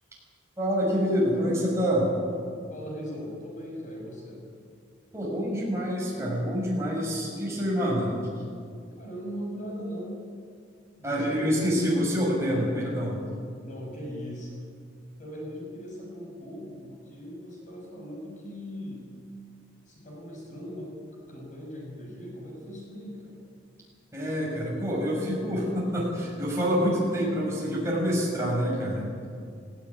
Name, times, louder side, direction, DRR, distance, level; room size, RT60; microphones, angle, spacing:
voice 1, 0.6-2.1 5.1-8.1 11.0-13.1 24.1-29.1, equal, 15° right, -4 dB, 6.9 m, -26 dB
voice 2, 2.7-4.4 9.0-10.2 11.0-12.1 12.5-13.2 13.6-14.5 15.2-19.1 19.9-20.9 21.3-23.4, equal, 40° left, -2 dB, 6.3 m, -39 dB
18.0 x 16.5 x 9.7 m, 2.3 s
head